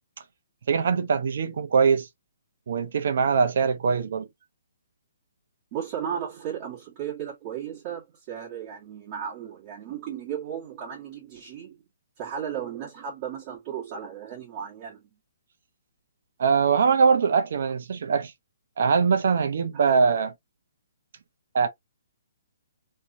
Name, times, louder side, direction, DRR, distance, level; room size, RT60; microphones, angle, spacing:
voice 1, 0.7-2.1 2.7-4.3 16.4-18.3 18.8-20.3 21.5-21.7, right 5 dB, 60° right, 1.0 m, -22 dB
voice 2, 5.7-11.8 12.2-15.0, right 8 dB, 30° right, 1.6 m, -35 dB
3.3 x 3.0 x 2.7 m
hypercardioid pair, 160°, 0 cm